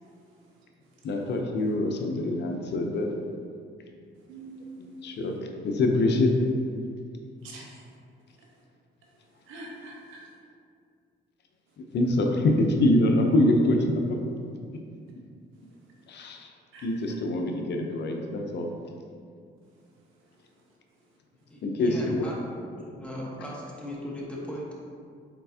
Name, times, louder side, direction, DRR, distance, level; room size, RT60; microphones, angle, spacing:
voice 1, 0.2-1.0 4.3-5.2 7.4-8.0 8.4-8.5 9.4-10.2 16.7-17.2 20.2-20.4, right 2 dB, 90° right, -2 dB, 0.9 m, -46 dB
voice 2, 1.0-3.1 4.8-5.4 5.6-6.5 11.9-14.2 16.1-16.5 16.8-18.7 21.6-22.3, left 1 dB, 60° left, 3 dB, 0.6 m, -24 dB
voice 3, 21.5-24.7, equal, 5° left, -5 dB, 1.1 m, -38 dB
4.5 x 4.2 x 2.7 m, 2.2 s
cardioid pair, 90°, 20 cm